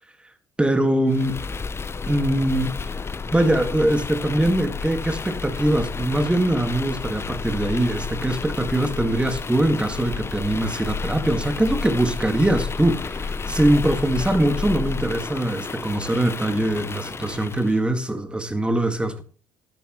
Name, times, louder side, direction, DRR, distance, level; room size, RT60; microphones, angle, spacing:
voice 1, 0.6-1.4 2.1-2.7 3.3-19.2, right 1 dB, 10° right, 2.1 m, -22 dB
sound 1, 1.1-17.8, left 4 dB, 25° left, 0.8 m, -31 dB
12.5 x 11.5 x 3.2 m
hypercardioid pair, 65°, 10 cm